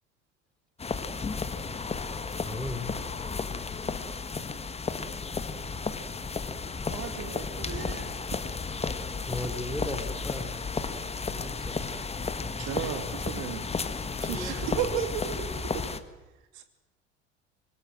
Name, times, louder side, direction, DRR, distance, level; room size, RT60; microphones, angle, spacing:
sound 1, 0.8-16.0, left 4 dB, 15° left, 1.6 m, -33 dB
voice 1, 2.4-2.9 9.3-10.5 11.3-11.8 14.2-14.9, left 1 dB, ahead, 7 dB, 3.6 m, -36 dB
voice 2, 6.9-8.1 12.6-13.6 15.7-15.8, right 8 dB, 40° right, 7 dB, 2.4 m, -37 dB
voice 3, 14.2-15.7 16.5-16.6, right 9 dB, 55° right, 8 dB, 2.7 m, -32 dB
25.5 x 21.0 x 7.7 m, 1.1 s
figure-of-eight pair, 65°, 37 cm